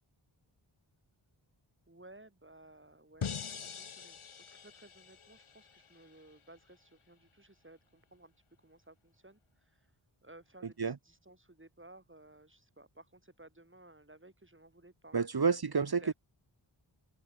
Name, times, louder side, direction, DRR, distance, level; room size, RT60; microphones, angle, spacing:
voice 1, 1.9-4.2 4.5-8.3 8.6-9.9 10.2-15.4 16.0-16.1, right 2 dB, 25° right, 6.3 m, -57 dB
sound 1, 3.2-6.3, left 6 dB, 75° left, 1.3 m, -43 dB
voice 2, 15.1-16.1, right 5 dB, 50° right, 1.1 m, -29 dB
wide cardioid pair, 60°, 49 cm